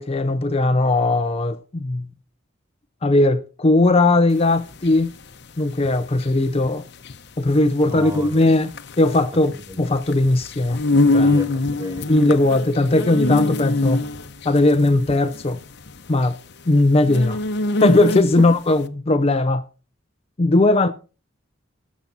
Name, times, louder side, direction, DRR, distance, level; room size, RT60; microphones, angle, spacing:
voice 1, 0.0-2.1 3.0-5.1 5.6-6.8 7.4-8.7 9.0-10.8 11.1-11.3 12.1-14.0 14.4-15.6 16.1-16.4 16.7-17.4 17.8-19.6 20.4-20.9, left 2 dB, 30° left, 0.5 m, -18 dB
sound 1, 4.4-18.6, left 2 dB, 55° left, 0.8 m, -24 dB
voice 2, 7.9-8.5 9.5-9.8 11.2-12.1 12.4-12.5 18.3-18.5 20.7-20.8, equal, 15° right, 1.4 m, -33 dB
18.0 x 7.3 x 4.0 m
head